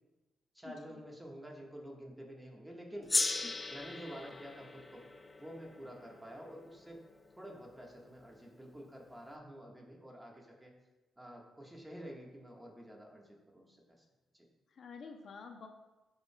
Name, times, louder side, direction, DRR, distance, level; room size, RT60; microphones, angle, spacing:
voice 1, 0.5-3.1 3.7-5.0 5.4-7.1 7.4-10.7 11.2-13.8 14.3-14.5, equal, 10° right, -1 dB, 1.5 m, -49 dB
Gong, 3.1-7.8, left 2 dB, 20° left, 0.4 m, -38 dB
voice 2, 14.7-15.7, left 5 dB, 55° left, 4 dB, 0.7 m, -49 dB
12.5 x 5.7 x 2.3 m, 1.1 s
cardioid pair, 115°, 0 cm